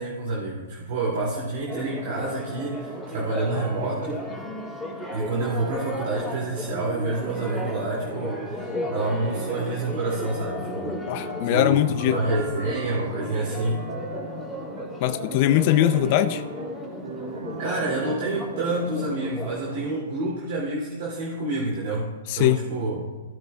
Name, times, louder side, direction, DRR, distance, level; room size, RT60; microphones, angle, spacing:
voice 1, 0.0-4.2 5.1-11.2 11.5-11.8 12.0-13.9 17.6-23.0, right 2 dB, 55° right, -5 dB, 2.5 m, -28 dB
Church bell, 1.7-20.0, left 1 dB, ahead, 2.7 m, -34 dB
voice 2, 11.1-12.2 15.0-16.4 22.3-22.6, left 12 dB, 45° left, 12 dB, 0.5 m, -21 dB
sound 1, 11.6-18.7, right 3 dB, 75° right, 1.1 m, -40 dB
17.0 x 8.2 x 2.3 m, 1.3 s
hypercardioid pair, 125°, 0 cm